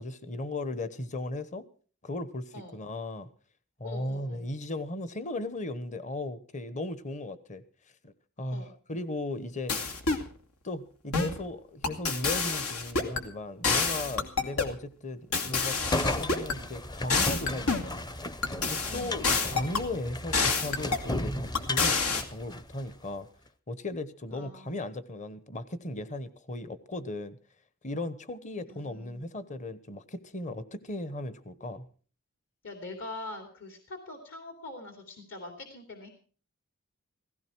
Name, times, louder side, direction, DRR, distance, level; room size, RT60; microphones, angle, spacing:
voice 1, 0.0-1.6 2.0-3.3 3.8-7.6 8.0-8.1 8.4-9.8 10.6-18.1 18.7-23.3 23.7-27.4 27.8-31.9, left 2 dB, 35° left, 14 dB, 1.1 m, -37 dB
voice 2, 3.8-4.5 8.5-8.7 18.9-19.2 24.3-24.8 28.7-29.2 32.6-36.1, left 2 dB, 60° left, 5 dB, 3.0 m, -43 dB
sound 1, 9.7-10.3 11.1-11.4 11.8-13.2 13.6-14.7 15.3-16.6 17.1-17.9 18.4-19.9 20.3-21.1 21.5-22.2, left 4 dB, 90° left, 2.4 m, -28 dB
sound 2, 15.7-22.9, left 1 dB, 20° left, 0.7 m, -35 dB
16.5 x 16.0 x 4.6 m, 0.41 s
head